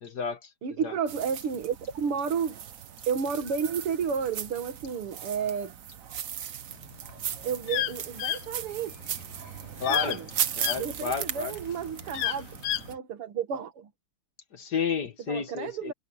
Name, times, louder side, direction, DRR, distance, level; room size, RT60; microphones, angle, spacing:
voice 1, 0.0-0.4 0.8-0.9 9.8-10.2 10.6-11.5 14.5-15.9, left 5 dB, 50° left, 1.8 m, -31 dB
voice 2, 0.6-2.6 3.1-5.7 7.4-9.0 9.9-10.3 10.7-12.5 12.9-13.9 15.3-15.9, right 6 dB, 80° right, 2.8 m, -31 dB
sound 1, 1.1-12.9, right 9 dB, 55° right, 1.0 m, -37 dB
sound 2, 6.9-10.8 11.3-12.9, left 13 dB, 75° left, 1.7 m, -30 dB
omnidirectional pair, 2.4 m